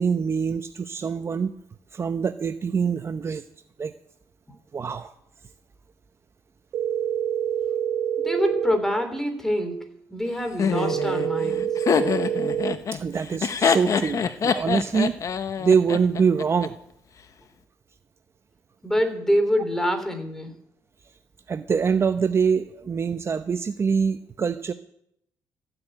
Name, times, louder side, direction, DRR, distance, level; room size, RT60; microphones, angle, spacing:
voice 1, 0.0-1.5 1.9-3.4 3.8-3.9 4.7-5.1 12.9-15.1 15.6-16.8 21.5-24.7, right 6 dB, 40° right, 10 dB, 0.8 m, -24 dB
sound 1, 6.7-8.7 10.7-12.7, right 9 dB, 70° right, 1.3 m, -26 dB
voice 2, 8.2-11.6 18.8-20.5, equal, 5° left, 7 dB, 3.4 m, -25 dB
Laughter, 10.6-16.7, left 6 dB, 50° left, 1.2 m, -25 dB
15.0 x 7.8 x 9.1 m, 0.72 s
cardioid pair, 80°, 7 cm